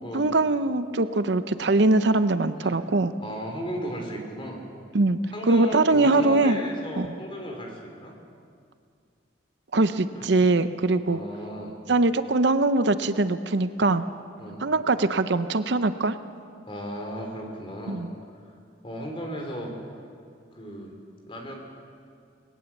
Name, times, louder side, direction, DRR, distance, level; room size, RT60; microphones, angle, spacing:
voice 1, 0.1-3.1 4.9-5.2 5.5-6.6 7.0-7.1 9.7-11.2 11.9-14.1 14.6-16.2 17.9-18.1, right 2 dB, 60° right, 11 dB, 0.7 m, -22 dB
voice 2, 3.2-4.6 5.3-8.1 10.1-10.5 11.1-11.7 14.4-14.6 16.7-18.0 18.8-19.7 20.5-20.9 21.3-21.6, equal, 30° left, 1 dB, 3.5 m, -35 dB
20.5 x 18.0 x 7.2 m, 2.3 s
head